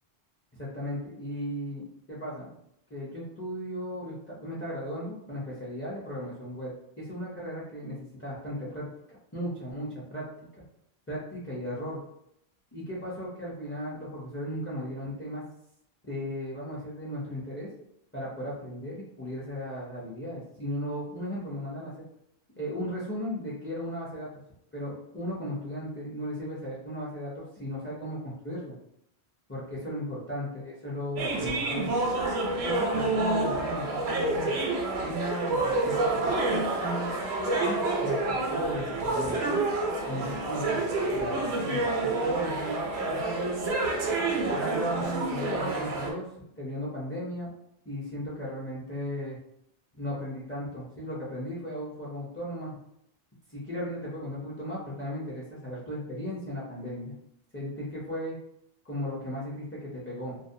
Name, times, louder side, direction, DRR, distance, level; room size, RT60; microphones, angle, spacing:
voice 1, 0.6-2.5 2.9-6.7 7.0-10.3 11.1-12.0 12.7-15.4 16.1-17.7 18.1-22.0 22.6-24.3 24.7-28.8 29.5-31.9 32.6-34.5 35.0-37.1 37.6-39.6 40.0-40.8 41.1-42.8 43.1-43.7 44.5-46.3 46.6-47.5 47.8-49.4 50.0-52.8 53.5-57.1 57.5-58.4 58.8-60.4, equal, 20° left, -6 dB, 0.4 m, -36 dB
sound 1, 31.2-46.1, right 2 dB, 85° right, 0.9 m, -28 dB
2.5 x 2.0 x 2.6 m, 0.78 s
omnidirectional pair, 1.0 m